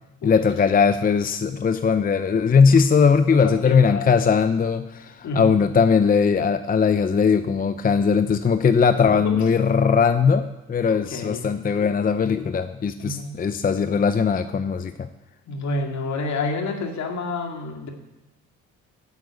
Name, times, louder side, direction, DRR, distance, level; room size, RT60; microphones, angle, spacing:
voice 1, 0.2-15.1, left 6 dB, 30° left, 10 dB, 0.6 m, -19 dB
voice 2, 3.3-4.2 5.2-5.6 9.2-9.4 11.1-11.5 13.0-13.4 15.5-17.9, left 3 dB, 65° left, 2 dB, 2.3 m, -29 dB
9.3 x 8.1 x 8.3 m, 1.0 s
cardioid pair, 90°, 30 cm